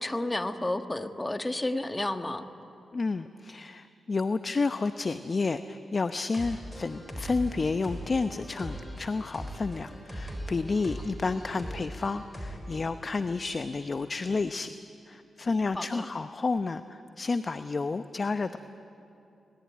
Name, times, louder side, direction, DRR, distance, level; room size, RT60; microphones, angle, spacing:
voice 1, 0.0-2.4 15.7-16.1, left 1 dB, 20° left, 8 dB, 1.5 m, -31 dB
voice 2, 2.9-14.7 15.1-18.6, left 4 dB, 45° left, 10 dB, 0.8 m, -30 dB
sound 1, 6.3-12.9, equal, 5° left, 6.5 m, -40 dB
25.5 x 20.0 x 9.4 m, 2.8 s
supercardioid pair, 50°, 0 cm